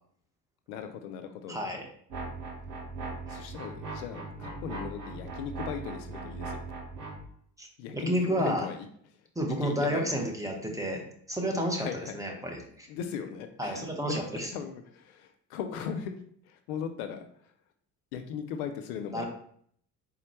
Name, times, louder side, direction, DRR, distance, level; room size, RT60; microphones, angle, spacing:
voice 1, 0.7-1.6 3.3-6.6 7.8-8.9 9.6-10.3 11.8-12.2 12.9-16.1 16.5-17.5 18.1-19.3, left 7 dB, 65° left, 7 dB, 0.5 m, -38 dB
voice 2, 1.5-1.8 3.3-3.4 7.6-7.7 7.9-8.7 9.3-11.9 12.1-12.9 13.6-14.5 19.1-19.3, equal, 5° right, 0 dB, 0.9 m, -31 dB
sound 1, 2.1-7.2, right 3 dB, 75° right, 1.1 m, -39 dB
4.2 x 3.8 x 2.9 m, 0.63 s
figure-of-eight pair, 50°, 48 cm